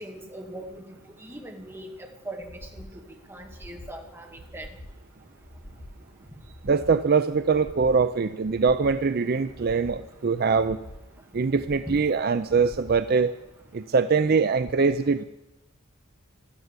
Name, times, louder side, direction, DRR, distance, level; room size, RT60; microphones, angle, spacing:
voice 1, 0.0-1.9 2.3-3.0 3.3-4.7 11.9-12.0, right 1 dB, 10° right, 2 dB, 2.1 m, -40 dB
sound 1, 2.4-2.9 3.4-3.9 4.4-5.0 5.4-6.0 6.4-7.0 7.4-8.0 8.4-9.0 9.4-10.0 10.4-11.0 11.4-12.0 12.4-13.0 13.5-13.6, left 1 dB, 75° left, 2.5 m, -45 dB
voice 2, 6.6-10.8 11.3-13.3 13.7-15.2, right 5 dB, 50° right, 12 dB, 0.5 m, -23 dB
13.0 x 12.5 x 8.2 m, 0.93 s
head